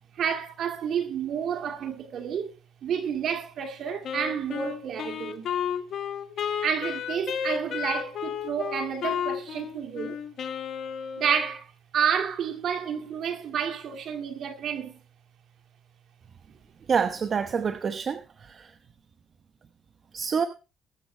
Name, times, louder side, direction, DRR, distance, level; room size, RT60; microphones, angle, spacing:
voice 1, 0.2-2.5 2.8-5.5 6.6-10.2 11.2-14.9, right 7 dB, 60° right, 2.1 m, -30 dB
Wind instrument woodwind instrument, 4.0-11.5, left 8 dB, 60° left, 1.8 m, -32 dB
voice 2, 16.9-18.7 20.1-20.5, right 6 dB, 45° right, 0.9 m, -27 dB
21.0 x 7.5 x 3.2 m
cardioid pair, 110°, 0 cm